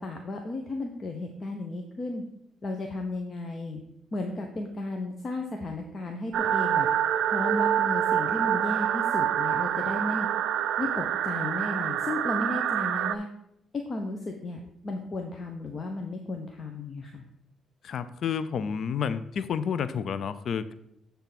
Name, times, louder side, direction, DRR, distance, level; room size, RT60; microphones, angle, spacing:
voice 1, 0.0-2.2 2.6-3.8 4.1-6.9 7.3-10.3 10.8-13.3 13.7-17.2, left 2 dB, 40° left, 3 dB, 0.9 m, -34 dB
sound 1, 6.3-13.2, right 10 dB, 80° right, 0.4 m, -26 dB
voice 2, 17.8-20.7, left 7 dB, 60° left, 14 dB, 0.5 m, -30 dB
8.3 x 3.5 x 5.8 m, 0.76 s
cardioid pair, 75°, 0 cm